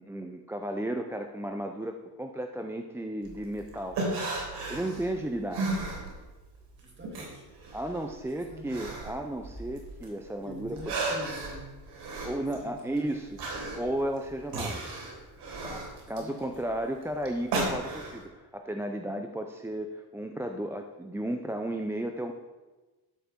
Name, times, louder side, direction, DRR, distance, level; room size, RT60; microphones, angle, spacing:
voice 1, 0.0-4.2 4.7-5.8 7.7-10.9 12.2-13.5 13.7-14.9 15.6-22.3, right 1 dB, 5° right, 5 dB, 0.4 m, -34 dB
sound 1, 3.2-6.5 6.8-10.1 10.5-18.2, right 2 dB, 75° right, 3.7 m, -35 dB
voice 2, 6.8-7.5 8.3-8.8 10.4-11.8 12.4-13.4 15.9-16.5, equal, 25° right, 2 dB, 2.3 m, -46 dB
12.0 x 5.9 x 7.2 m, 1.2 s
cardioid pair, 150°, 42 cm